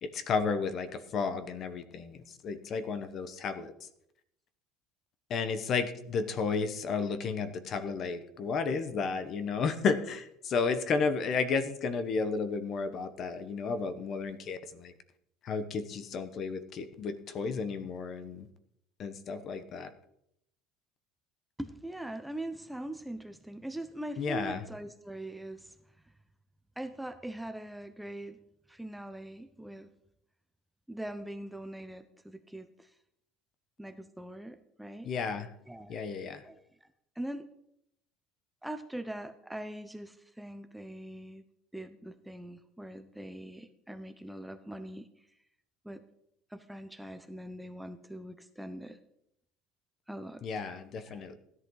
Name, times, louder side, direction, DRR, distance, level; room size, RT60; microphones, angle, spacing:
voice 1, 0.0-3.9 5.3-14.9 15.4-18.5 19.0-19.9 24.2-24.6 35.0-35.5 35.9-36.4 50.4-51.3, left 5 dB, 45° left, 12 dB, 1.2 m, -32 dB
voice 2, 21.6-25.8 26.8-28.4 28.7-29.9 30.9-32.9 33.8-35.1 35.7-35.9 36.4-36.9 37.2-37.5 38.6-41.4 41.7-45.1 45.8-46.0 46.5-49.0 50.1-50.4 51.1-51.3, right 1 dB, 5° right, 10 dB, 0.8 m, -42 dB
16.0 x 11.0 x 4.0 m, 0.76 s
supercardioid pair, 120°, 0 cm